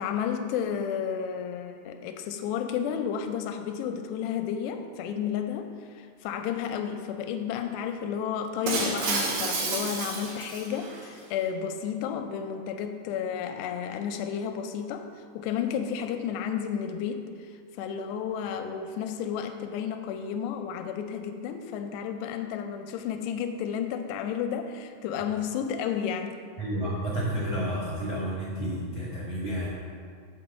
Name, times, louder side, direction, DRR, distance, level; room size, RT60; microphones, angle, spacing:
voice 1, 0.0-15.1 15.4-17.5 17.8-26.4, left 8 dB, 85° left, 6 dB, 2.5 m, -32 dB
Shatter, 8.7-11.1, right 3 dB, 75° right, 3.7 m, -30 dB
voice 2, 26.6-29.7, right 1 dB, 55° right, -7 dB, 1.4 m, -30 dB
6.2 x 6.2 x 7.2 m, 2.1 s
omnidirectional pair, 5.1 m